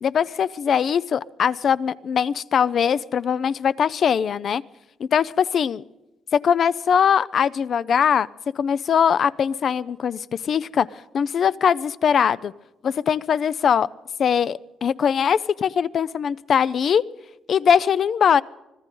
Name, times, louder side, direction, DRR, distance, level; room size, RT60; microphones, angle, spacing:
voice 1, 0.0-4.6 5.0-5.8 6.4-8.3 8.6-12.5 12.8-13.9 14.2-17.0 17.5-18.4, left 7 dB, 55° left, 18 dB, 0.5 m, -21 dB
25.5 x 15.0 x 3.8 m, 0.97 s
cardioid pair, 90°, 0 cm